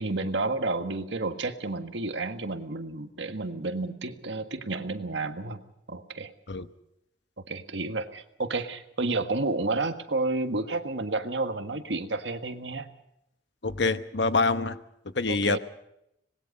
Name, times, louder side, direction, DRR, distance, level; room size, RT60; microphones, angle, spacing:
voice 1, 0.0-5.6 5.9-6.3 7.5-12.9 15.3-15.6, right 3 dB, 85° right, 7 dB, 1.6 m, -31 dB
voice 2, 13.6-14.8 15.1-15.6, left 3 dB, 75° left, 11 dB, 1.1 m, -25 dB
25.5 x 20.0 x 5.4 m, 0.81 s
head